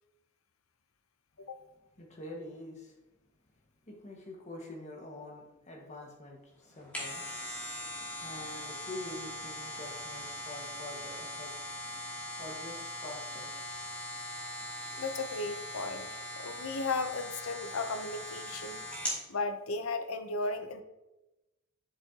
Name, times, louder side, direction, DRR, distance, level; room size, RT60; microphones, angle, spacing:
voice 1, 2.0-2.9 3.9-7.5 8.2-11.5 12.4-13.5, left 1 dB, 35° left, 0 dB, 1.6 m, -46 dB
sound 1, 6.7-19.2 19.7-19.8, left 1 dB, 5° left, 2.6 m, -40 dB
voice 2, 15.0-16.1 16.4-18.8 19.3-20.8, left 3 dB, 90° left, 9 dB, 0.8 m, -35 dB
8.4 x 7.1 x 2.9 m, 0.99 s
head